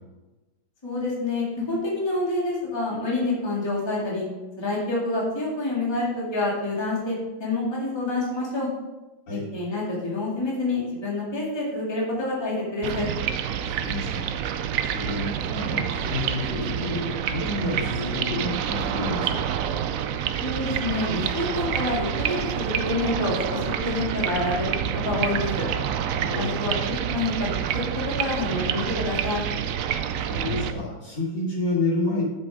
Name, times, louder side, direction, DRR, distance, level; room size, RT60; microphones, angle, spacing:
voice 1, 0.8-4.2 4.6-8.7 9.5-13.1 20.4-25.6 26.3-26.8 27.1-27.8 28.2-29.4, left 2 dB, 15° left, -5 dB, 2.0 m, -27 dB
sound 1, 12.8-30.7, right 9 dB, 80° right, 0.7 m, -28 dB
voice 2, 13.6-19.6 26.2-26.6 30.1-32.2, left 2 dB, 65° left, -6 dB, 3.9 m, -30 dB
7.6 x 7.3 x 4.7 m, 1.1 s
omnidirectional pair, 2.0 m